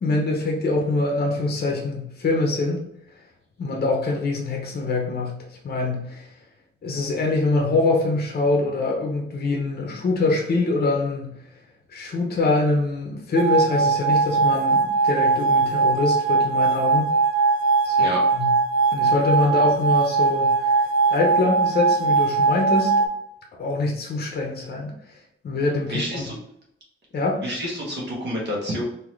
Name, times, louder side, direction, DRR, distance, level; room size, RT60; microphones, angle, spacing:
voice 1, 0.0-2.9 3.6-6.2 6.8-11.4 11.9-17.1 17.8-18.0 18.3-18.6 18.9-22.9 23.6-24.9 25.4-26.2 27.1-27.4, left 2 dB, 50° left, 0 dB, 0.7 m, -24 dB
sound 1, 13.4-23.1, right 4 dB, 80° right, 0.4 m, -20 dB
voice 2, 25.9-26.3 27.4-28.8, equal, 55° right, -3 dB, 1.4 m, -28 dB
3.9 x 2.7 x 3.1 m, 0.76 s
wide cardioid pair, 150°, 21 cm